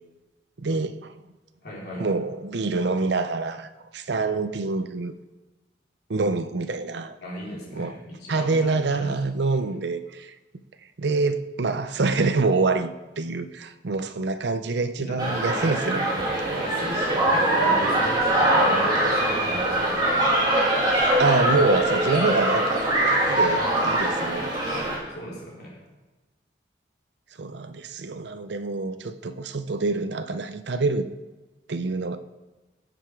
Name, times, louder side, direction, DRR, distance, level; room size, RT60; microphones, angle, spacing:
voice 1, 0.6-1.1 2.0-5.1 6.1-7.2 7.7-7.9 8.3-10.3 11.0-16.6 21.2-24.5 27.4-31.1 31.7-32.2, right 3 dB, 70° right, 0.6 m, -26 dB
voice 2, 1.6-2.1 7.2-9.2 15.0-15.3 16.6-20.4 25.1-25.8, equal, 55° left, 4.0 m, -36 dB
sound 1, 15.2-25.0, right 1 dB, 25° right, 2.4 m, -22 dB
15.0 x 6.8 x 4.7 m
head